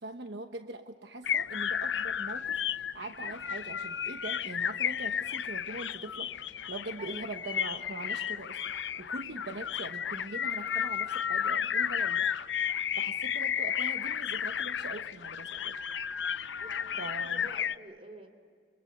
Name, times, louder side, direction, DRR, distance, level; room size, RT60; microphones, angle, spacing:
voice 1, 0.0-6.4 6.7-8.6 9.0-12.3 12.9-15.8 17.0-17.5, right 2 dB, 70° right, 6 dB, 1.1 m, -42 dB
sound 1, 1.2-17.7, left 8 dB, 90° left, 0.7 m, -33 dB
voice 2, 16.6-18.3, right 2 dB, 35° right, 6 dB, 3.8 m, -48 dB
29.5 x 25.0 x 8.1 m, 2.1 s
head